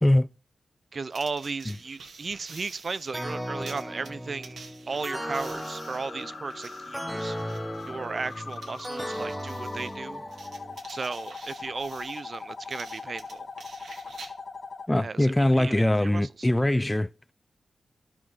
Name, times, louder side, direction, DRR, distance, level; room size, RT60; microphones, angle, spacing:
voice 1, 0.9-4.6 4.9-7.6 7.9-10.2 10.9-13.5 15.0-16.5, right 4 dB, 50° right, 0.6 m, -35 dB
sound 1, 1.1-14.3, right 4 dB, 75° right, 1.9 m, -49 dB
sound 2, 3.1-10.8, equal, 5° right, 1.2 m, -37 dB
sound 3, 5.2-14.9, left 4 dB, 55° left, 1.5 m, -41 dB
voice 2, 14.9-17.1, left 1 dB, 15° left, 0.5 m, -22 dB
11.5 x 7.3 x 6.2 m
cardioid pair, 55°, 0 cm